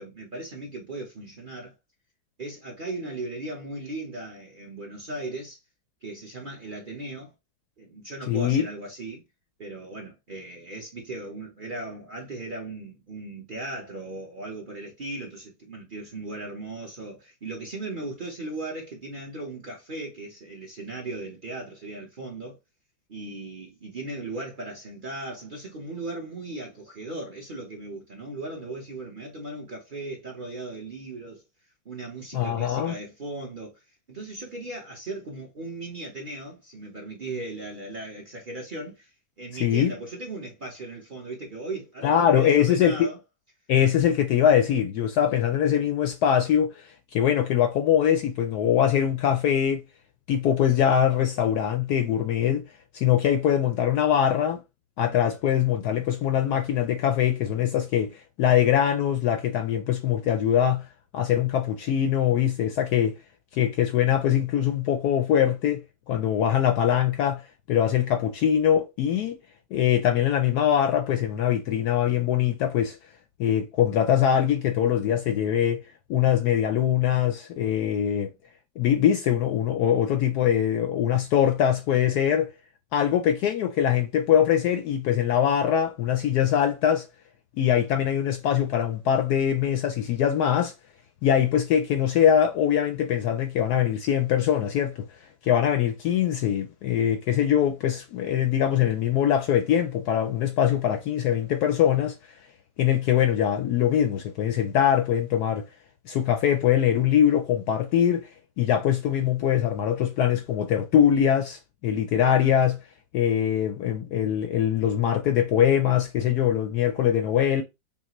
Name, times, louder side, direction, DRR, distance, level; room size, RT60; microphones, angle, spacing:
voice 1, 0.0-1.7 2.4-5.6 6.0-7.3 7.8-9.2 9.6-22.6 23.1-31.4 31.8-39.1 39.4-43.2 45.2-45.4 55.0-55.3, right 2 dB, 35° right, 0.9 m, -37 dB
voice 2, 8.3-8.7 32.3-32.9 39.6-39.9 42.0-43.1 43.7-49.8 50.3-52.7 52.9-54.6 55.0-60.9 61.1-63.2 63.5-65.8 66.1-69.3 69.7-73.0 73.4-75.8 76.1-78.3 78.8-82.5 82.9-87.1 87.6-90.7 91.2-95.1 95.4-102.1 102.8-105.7 106.1-108.3 108.6-112.8 113.1-117.6, left 9 dB, 70° left, 1.0 m, -22 dB
5.7 x 2.3 x 3.0 m
omnidirectional pair, 2.0 m